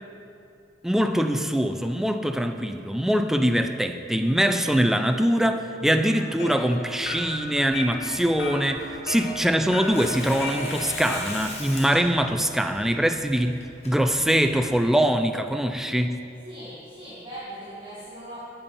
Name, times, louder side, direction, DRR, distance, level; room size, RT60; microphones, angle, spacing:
voice 1, 0.8-16.2, equal, ahead, 7 dB, 0.3 m, -23 dB
sound 1, 6.1-11.4, left 1 dB, 55° left, 1.0 m, -35 dB
Tearing, 6.9-14.7, left 2 dB, 35° left, 1.3 m, -41 dB
voice 2, 16.4-18.4, right 1 dB, 25° right, -11 dB, 1.7 m, -39 dB
8.5 x 6.8 x 5.3 m, 2.7 s
head